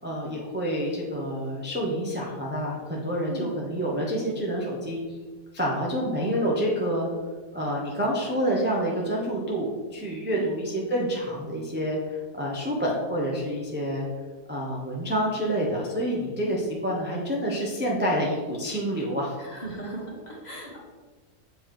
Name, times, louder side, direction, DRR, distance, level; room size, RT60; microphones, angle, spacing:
voice 1, 0.0-5.0 5.5-7.1 7.5-14.1 14.5-19.3, equal, 10° right, -3 dB, 0.9 m, -28 dB
voice 2, 19.4-20.8, right 1 dB, 30° left, -3 dB, 1.5 m, -37 dB
7.5 x 4.6 x 4.6 m, 1.4 s
omnidirectional pair, 1.7 m